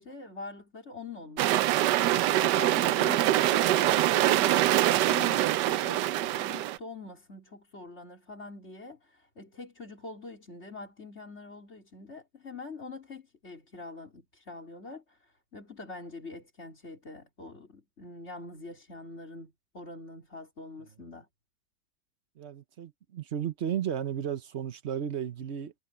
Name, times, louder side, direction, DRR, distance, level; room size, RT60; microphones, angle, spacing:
voice 1, 0.0-21.3, left 3 dB, 40° left, 4.5 m, -44 dB
sound 1, 1.4-6.8, right 14 dB, 80° right, 1.2 m, -24 dB
voice 2, 22.4-25.7, right 9 dB, 50° right, 1.0 m, -34 dB
omnidirectional pair, 1.9 m